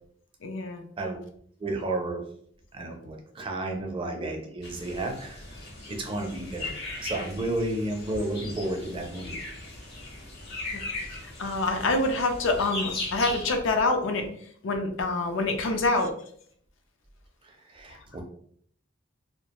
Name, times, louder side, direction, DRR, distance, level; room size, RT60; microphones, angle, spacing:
voice 1, 0.4-0.8 10.7-10.8 11.4-14.3 14.6-16.1, left 2 dB, 70° left, 5 dB, 0.4 m, -26 dB
voice 2, 1.6-2.2 2.7-5.4 5.9-9.4 17.7-18.2, right 2 dB, 25° right, 2 dB, 0.4 m, -32 dB
sound 1, 4.6-13.4, left 2 dB, 55° left, 0.9 m, -38 dB
2.3 x 2.1 x 2.9 m, 0.62 s
head